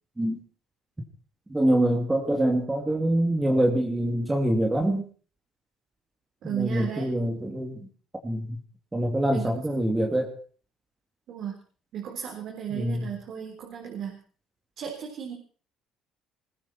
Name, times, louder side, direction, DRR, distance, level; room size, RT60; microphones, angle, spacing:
voice 1, 1.5-5.0 6.4-7.9 8.2-8.6 8.9-10.4 12.7-13.1, right 1 dB, 15° right, 2 dB, 2.8 m, -25 dB
voice 2, 6.4-7.1 9.3-9.6 11.3-11.5 11.9-14.2 14.8-15.3, right 8 dB, 60° right, 1 dB, 4.0 m, -34 dB
21.0 x 15.0 x 4.5 m, 0.42 s
cardioid pair, 105°, 0 cm